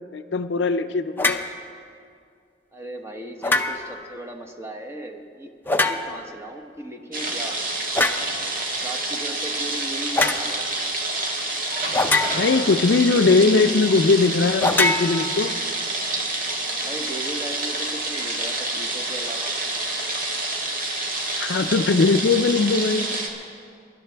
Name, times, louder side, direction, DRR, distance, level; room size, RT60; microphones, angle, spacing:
voice 1, 0.1-1.4 12.3-15.6 21.4-23.1, left 4 dB, 70° left, 0.5 m, -20 dB
sound 1, 1.2-1.5 3.4-4.0 5.7-6.3 7.9-8.3 10.1-10.4 11.9-12.7 14.6-15.7, left 2 dB, 10° left, 0.5 m, -23 dB
voice 2, 2.7-7.6 8.7-10.7 16.8-19.5, right 1 dB, 15° right, 1.0 m, -37 dB
sound 2, 7.1-23.3, right 2 dB, 50° right, 1.7 m, -28 dB
23.5 x 11.5 x 3.4 m
head